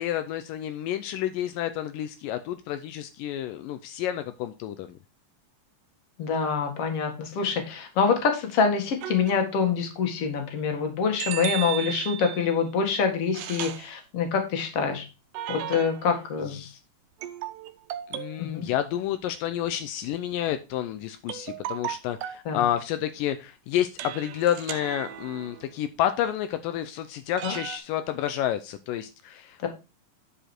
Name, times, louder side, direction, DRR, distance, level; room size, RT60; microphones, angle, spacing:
voice 1, 0.0-5.0 16.5-16.8 18.1-29.7, left 11 dB, 85° left, 9 dB, 2.3 m, -30 dB
voice 2, 6.2-15.0 15.5-16.6 18.4-18.7 22.5-22.7 27.4-27.6 29.6-29.7, left 6 dB, 50° left, 4 dB, 2.5 m, -26 dB
sound 1, 9.0-9.7 11.2-12.6 13.3-13.9 15.3-16.2 17.2-18.5 21.3-22.5 24.0-25.7 27.4-27.8, right 12 dB, 80° right, 2.3 m, -35 dB
10.0 x 5.0 x 4.4 m, 0.28 s
omnidirectional pair, 3.9 m